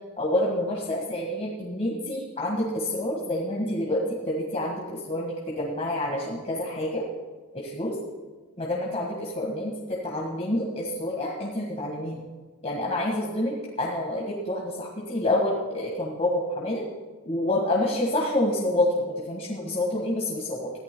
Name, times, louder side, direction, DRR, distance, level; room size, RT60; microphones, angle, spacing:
voice 1, 0.2-7.0 7.5-7.9 8.6-12.2 12.6-16.8 17.2-20.7, left 1 dB, 30° left, -3 dB, 1.7 m, -28 dB
21.0 x 15.0 x 2.3 m, 1.3 s
head